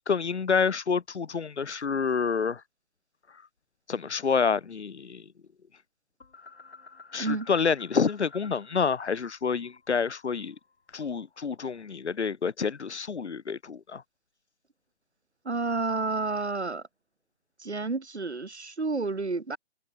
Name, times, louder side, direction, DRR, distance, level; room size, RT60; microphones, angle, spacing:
voice 1, 0.0-2.6 3.9-5.2 7.1-10.6 10.9-14.0, left 5 dB, 85° left, 0.9 m, -28 dB
sound 1, 6.2-8.8 9.1-11.4, left 4 dB, 70° left, 7.8 m, -51 dB
voice 2, 7.2-7.5 15.5-16.8 17.6-19.6, right 3 dB, 80° right, 5.5 m, -30 dB
figure-of-eight pair, 145°, 33 cm